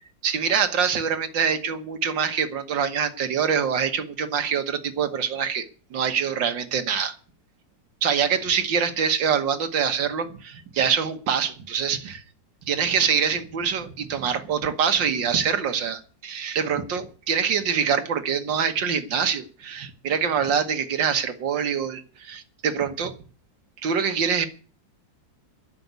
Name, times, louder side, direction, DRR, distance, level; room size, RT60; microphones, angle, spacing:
voice 1, 0.2-5.7 5.9-7.2 8.0-12.2 12.7-23.1 23.8-24.5, right 7 dB, 80° right, 1.9 m, -25 dB
12.0 x 6.8 x 9.4 m
omnidirectional pair, 2.0 m